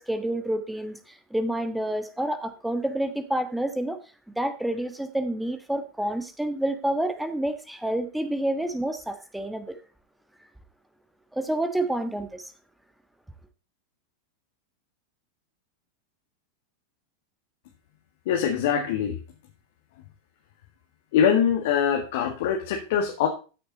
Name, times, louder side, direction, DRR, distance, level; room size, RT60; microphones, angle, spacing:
voice 1, 0.0-4.0 4.4-9.8 11.3-12.4, right 1 dB, 5° right, 1.4 m, -28 dB
voice 2, 18.3-19.2 21.1-23.3, left 8 dB, 50° left, 1.9 m, -23 dB
14.0 x 6.7 x 4.1 m
figure-of-eight pair, 90°, 0 cm